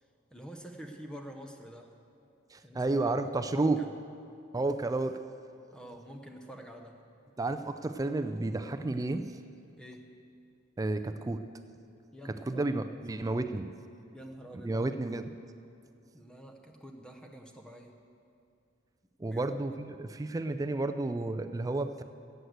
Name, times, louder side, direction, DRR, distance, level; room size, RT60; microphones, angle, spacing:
voice 1, 0.3-1.9 2.6-3.1 3.5-3.9 5.7-7.0 9.8-10.1 12.1-12.8 14.1-15.0 16.1-17.9 19.2-19.4, equal, 5° left, 3 dB, 0.7 m, -46 dB
voice 2, 2.5-3.8 4.5-5.2 7.4-9.2 10.8-11.4 12.2-13.7 14.6-15.3 19.2-22.0, right 2 dB, 20° right, 9 dB, 0.4 m, -31 dB
14.0 x 8.0 x 8.0 m, 2.5 s
head